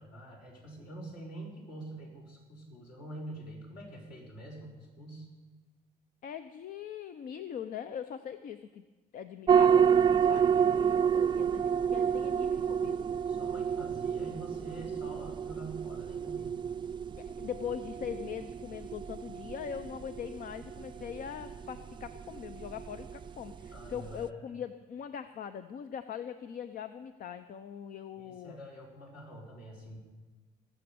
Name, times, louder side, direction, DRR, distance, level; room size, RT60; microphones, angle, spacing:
voice 1, 0.0-5.3 13.3-16.6 23.7-24.5 28.2-30.0, right 1 dB, 70° left, -3 dB, 5.2 m, -46 dB
voice 2, 6.2-8.8 9.1-13.1 17.2-28.6, left 8 dB, 55° left, 10 dB, 0.6 m, -41 dB
sound 1, 9.5-24.3, right 7 dB, 30° right, 0.4 m, -30 dB
20.5 x 7.0 x 7.0 m, 1.3 s
cardioid pair, 110°, 17 cm